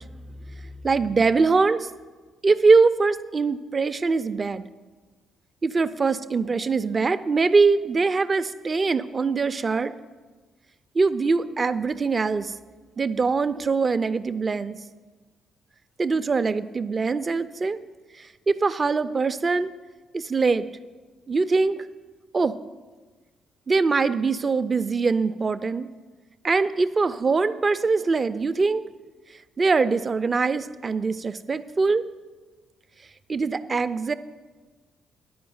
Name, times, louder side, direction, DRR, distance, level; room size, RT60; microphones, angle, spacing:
voice 1, 0.8-1.9 2.4-4.6 5.6-9.9 10.9-12.5 13.0-14.8 16.0-17.8 18.5-19.7 20.1-20.7 21.3-21.8 22.3-22.5 23.7-25.9 26.4-28.8 29.6-32.1 33.3-34.1, right 4 dB, 35° right, 13 dB, 0.4 m, -22 dB
10.0 x 4.8 x 7.9 m, 1.3 s
cardioid pair, 90°, 0 cm